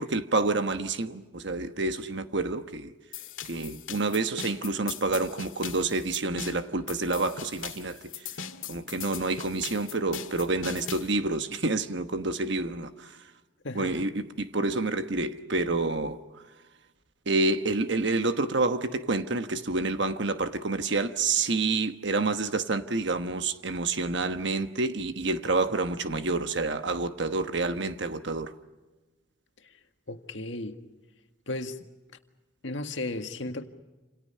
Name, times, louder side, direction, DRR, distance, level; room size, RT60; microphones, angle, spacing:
voice 1, 0.0-2.9 3.5-8.0 8.7-12.9 13.7-16.2 17.3-28.5, right 3 dB, 60° right, 1.2 m, -28 dB
sound 1, 3.1-11.1, left 8 dB, 85° left, 1.8 m, -40 dB
voice 2, 13.6-14.1 30.1-30.8 31.5-31.8 32.6-33.6, left 2 dB, 65° left, 1.8 m, -34 dB
28.5 x 28.5 x 5.6 m
head